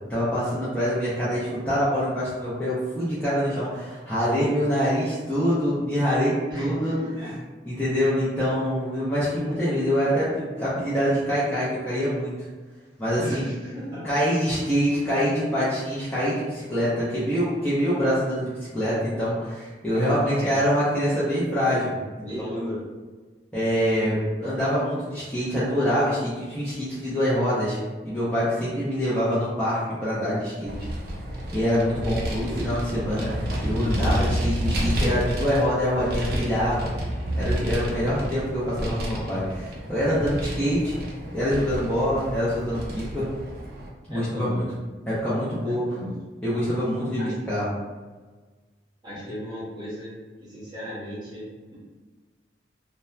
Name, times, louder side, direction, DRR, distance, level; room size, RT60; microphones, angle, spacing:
voice 1, 0.1-6.9 7.7-12.5 13.0-13.5 14.0-21.9 23.5-27.8 28.0-30.7 31.5-36.9 37.4-41.0 41.3-43.3 44.1-44.6 45.1-45.8 46.4-47.7, equal, 5° left, -12 dB, 0.5 m, -25 dB
voice 2, 6.5-7.3 13.2-14.1 19.9-20.6 22.2-22.8 44.1-44.7 45.7-46.2 47.2-47.3 49.0-50.1 50.4-51.8, equal, 25° right, -10 dB, 0.9 m, -35 dB
Vehicle, 30.6-43.9, right 1 dB, 55° right, 0.4 m, -30 dB
2.7 x 2.1 x 2.2 m, 1.3 s
head